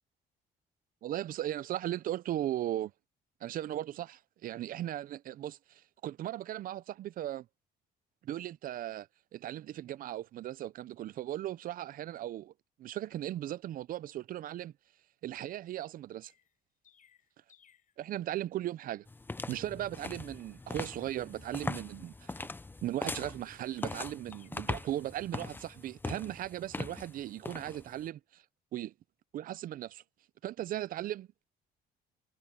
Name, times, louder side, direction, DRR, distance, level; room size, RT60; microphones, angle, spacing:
voice 1, 1.0-2.9 3.4-7.5 8.2-9.1 9.3-12.5 12.8-14.7 15.2-16.3 18.0-19.1 19.5-22.5 22.8-28.4 28.7-28.9 29.3-30.0 30.4-31.4, right 13 dB, 55° right, 0.5 m, -37 dB
Chirp tweet, 16.2-18.0 22.9-24.5, left 9 dB, 50° left, 7.9 m, -64 dB
sound 1, 19.1-28.1, left 3 dB, 10° left, 0.6 m, -41 dB
cardioid pair, 110°, 17 cm